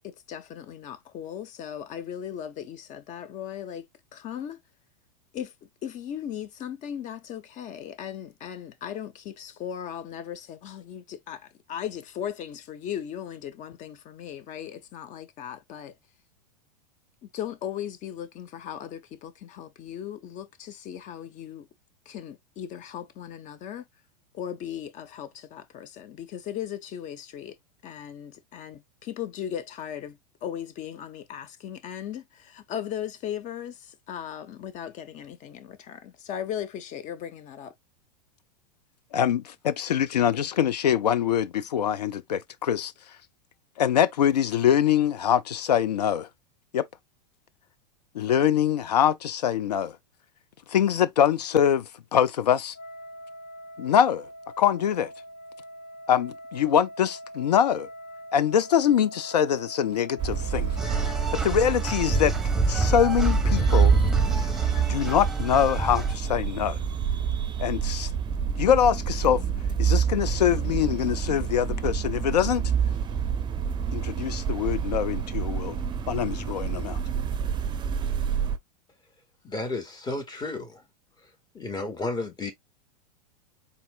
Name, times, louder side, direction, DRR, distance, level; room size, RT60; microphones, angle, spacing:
voice 1, 0.0-3.8 4.1-4.6 5.3-5.5 5.8-11.4 11.7-15.9 17.3-21.6 22.1-23.8 24.3-27.5 27.8-37.7, left 9 dB, 35° left, 1.0 m, -37 dB
voice 2, 39.1-42.9 43.8-46.3 46.7-46.9 48.1-50.0 50.7-52.8 53.8-54.3 54.6-55.1 56.1-57.9 58.3-60.7 61.3-62.3 62.7-63.9 64.8-66.8 67.6-68.1 68.6-69.4 69.8-72.6 73.9-75.8 76.1-77.0, left 9 dB, 75° left, 0.7 m, -24 dB
Wind instrument woodwind instrument, 52.7-62.1, equal, 60° left, 1.6 m, -44 dB
sound 1, 60.2-78.6, right 7 dB, 20° right, 0.7 m, -27 dB
sound 2, 60.8-66.1, right 1 dB, ahead, 1.4 m, -28 dB
voice 3, 79.4-80.8 81.5-82.5, left 2 dB, 20° left, 2.0 m, -32 dB
4.3 x 4.2 x 2.4 m
hypercardioid pair, 95°, 21 cm